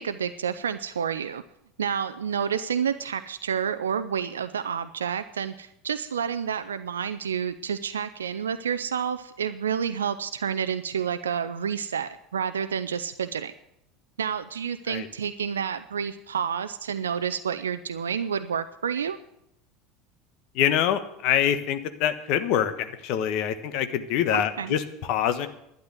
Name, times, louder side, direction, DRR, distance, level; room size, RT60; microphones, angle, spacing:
voice 1, 0.0-1.4 1.8-13.5 14.2-19.2 24.3-24.8, right 7 dB, 80° right, 10 dB, 0.5 m, -29 dB
voice 2, 20.5-25.5, left 10 dB, 55° left, 11 dB, 1.2 m, -25 dB
11.5 x 9.4 x 7.8 m, 0.79 s
figure-of-eight pair, 75°, 0 cm